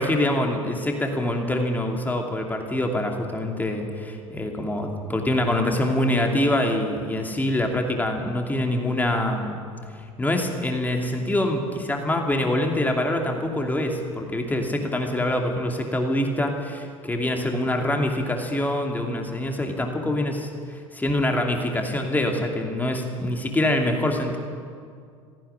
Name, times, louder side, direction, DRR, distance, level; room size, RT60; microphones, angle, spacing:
voice 1, 0.0-9.6 9.9-24.4, left 1 dB, 10° left, 3 dB, 2.7 m, -25 dB
16.5 x 15.5 x 10.0 m, 2.3 s
figure-of-eight pair, 70°, 17 cm